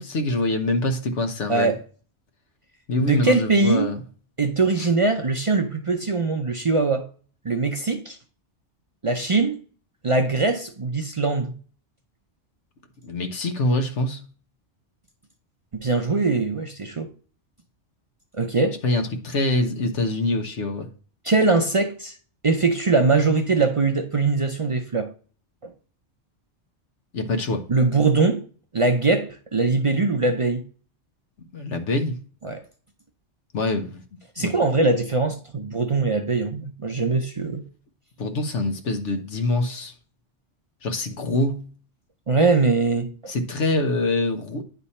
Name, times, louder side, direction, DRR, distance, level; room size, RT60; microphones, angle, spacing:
voice 1, 0.0-1.7 2.9-4.0 13.0-14.2 18.8-20.9 27.1-27.6 31.5-32.2 33.5-34.0 34.4-34.5 38.2-39.9 40.8-41.7 43.3-44.6, left 2 dB, 85° left, 1.4 m, -25 dB
voice 2, 3.0-3.9 4.4-7.1 7.4-8.2 9.0-9.6 10.0-11.5 15.7-17.1 18.3-18.8 21.2-22.1 22.4-25.1 25.6-25.7 27.7-28.4 28.7-30.6 32.4-32.6 34.4-37.6 42.3-43.1, right 3 dB, 40° right, 0.5 m, -22 dB
10.0 x 3.4 x 4.2 m
omnidirectional pair, 1.2 m